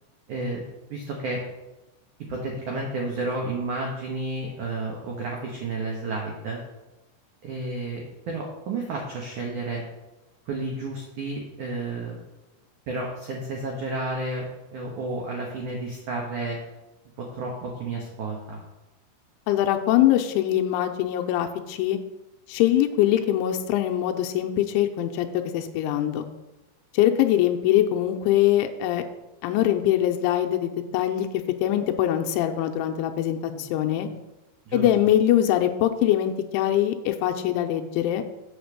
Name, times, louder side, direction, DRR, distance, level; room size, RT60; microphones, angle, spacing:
voice 1, 0.3-0.6 0.9-1.4 2.3-6.6 7.4-9.8 10.5-12.2 12.9-16.6 17.2-18.6 33.5-33.6 34.7-34.9, right 2 dB, 85° right, -1 dB, 1.7 m, -31 dB
voice 2, 19.5-22.0 22.5-26.3 26.9-29.0 29.4-34.1 34.7-38.2, left 12 dB, 85° left, 5 dB, 3.0 m, -23 dB
8.6 x 5.1 x 6.9 m, 1.0 s
omnidirectional pair, 5.5 m